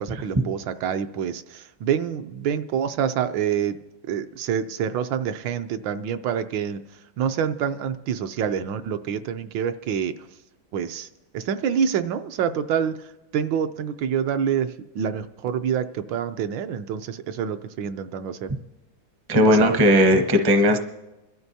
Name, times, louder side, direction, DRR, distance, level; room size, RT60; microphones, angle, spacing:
voice 1, 0.0-3.8 4.1-6.8 7.2-10.1 10.7-11.1 11.3-13.1 13.3-18.5 19.3-19.8, right 8 dB, 75° right, 9 dB, 1.3 m, -27 dB
voice 2, 19.3-20.8, equal, 25° right, 6 dB, 0.5 m, -17 dB
26.5 x 12.5 x 2.7 m, 1.0 s
omnidirectional pair, 2.1 m